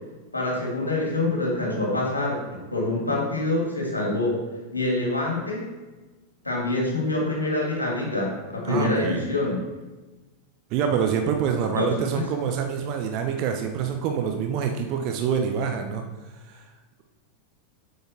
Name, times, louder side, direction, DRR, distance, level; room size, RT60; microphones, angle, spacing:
voice 1, 0.3-2.4 2.7-4.4 4.7-5.7 6.4-9.6 11.8-12.0, left 2 dB, 80° left, -2 dB, 2.5 m, -25 dB
voice 2, 8.7-9.2 10.7-16.0 16.4-16.6, right 7 dB, 40° right, 4 dB, 0.8 m, -26 dB
7.8 x 5.5 x 4.5 m, 1.2 s
figure-of-eight pair, 90°, 0 cm